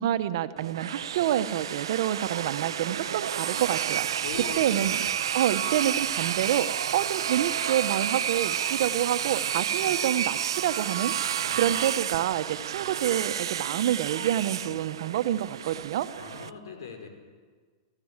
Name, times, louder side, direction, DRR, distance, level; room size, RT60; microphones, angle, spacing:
voice 1, 0.0-4.2 4.6-5.0 5.3-6.7 6.9-11.1 11.6-16.1, right 11 dB, 65° right, 12 dB, 1.2 m, -27 dB
sound 1, 0.6-16.5, right 9 dB, 90° right, 0.5 m, -30 dB
voice 2, 4.2-5.0 11.4-11.6 16.1-17.1, left 6 dB, 85° left, 5 dB, 4.8 m, -40 dB
26.5 x 15.5 x 7.5 m, 1.5 s
hypercardioid pair, 140°, 2 cm